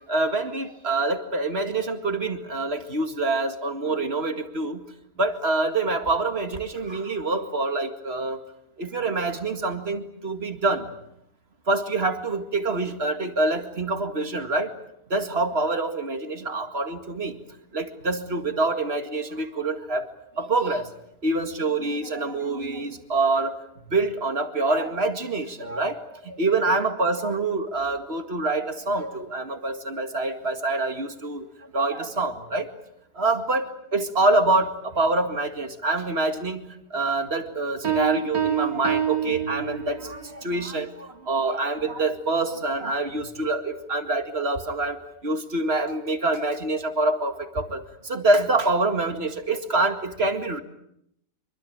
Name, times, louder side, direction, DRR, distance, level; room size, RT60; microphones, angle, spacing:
voice 1, 0.1-4.8 5.2-8.4 8.8-10.9 11.7-14.7 15.1-17.4 17.7-20.1 20.4-20.9 21.2-23.6 23.9-31.5 31.7-32.7 33.2-33.6 33.9-50.6, right 2 dB, 45° right, 8 dB, 2.3 m, -26 dB
Piano, 37.8-40.2, right 8 dB, 85° right, 2.3 m, -26 dB
25.5 x 24.0 x 8.8 m, 0.75 s
omnidirectional pair, 1.5 m